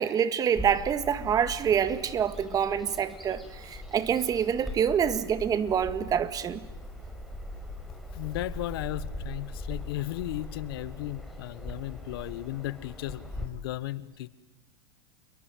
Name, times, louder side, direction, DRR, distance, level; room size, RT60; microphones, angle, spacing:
voice 1, 0.0-6.6, right 8 dB, 30° right, 1.8 m, -26 dB
Bird vocalization bird call bird song, 0.6-13.5, left 1 dB, ahead, 5.4 m, -41 dB
voice 2, 8.1-14.3, left 16 dB, 70° left, 1.5 m, -35 dB
28.5 x 22.5 x 9.3 m
hypercardioid pair, 115°, 13 cm